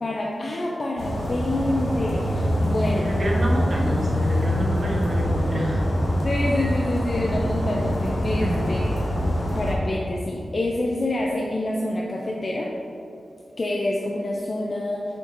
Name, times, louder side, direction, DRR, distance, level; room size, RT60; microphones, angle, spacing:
voice 1, 0.0-3.1 6.2-12.7 13.6-15.1, left 1 dB, 40° left, -2 dB, 0.4 m, -27 dB
sound 1, 1.0-9.7, equal, 80° left, 1.2 m, -24 dB
voice 2, 3.0-5.8 8.4-8.7, equal, 45° right, -2 dB, 1.0 m, -28 dB
7.1 x 4.6 x 3.0 m, 2.8 s
wide cardioid pair, 150°, 0 cm